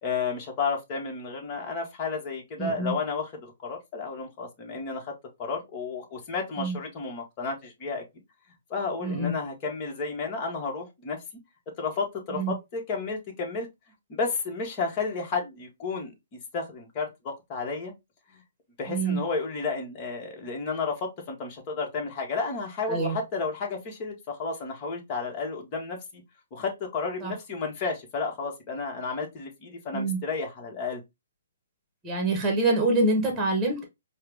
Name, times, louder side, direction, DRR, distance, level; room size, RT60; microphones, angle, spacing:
voice 1, 0.0-5.1 5.4-8.0 8.7-11.2 11.8-13.7 14.1-16.1 16.5-17.9 18.8-26.2 26.5-31.0, left 4 dB, 30° left, 1.5 m, -32 dB
voice 2, 2.6-2.9 6.6-6.8 9.0-9.3 12.4-12.5 18.9-19.2 22.9-23.2 27.2-27.3 29.9-30.2 32.0-33.8, right 2 dB, 10° right, 1.4 m, -25 dB
4.6 x 2.4 x 3.4 m
hypercardioid pair, 145°, 0 cm